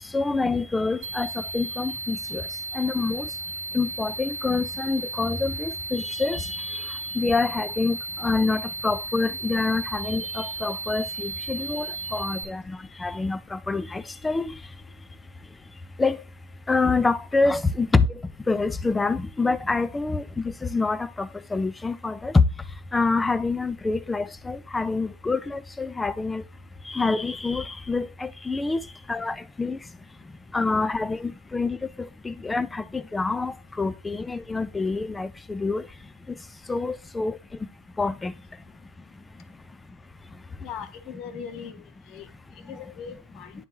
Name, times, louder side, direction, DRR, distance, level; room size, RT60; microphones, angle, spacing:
voice 1, 0.1-2.4 2.7-3.3 3.7-14.5 16.0-16.2 16.7-18.1 18.5-22.4 22.9-26.4 26.9-28.8 29.1-29.8 30.5-35.8 36.7-37.3 38.0-38.3, left 3 dB, 10° left, 0.4 m, -26 dB
sound 1, 1.0-12.4, right 3 dB, 65° right, 0.9 m, -34 dB
voice 2, 40.6-42.3 42.7-43.5, left 7 dB, 40° left, 0.9 m, -39 dB
9.6 x 3.4 x 3.0 m
hypercardioid pair, 105°, 0 cm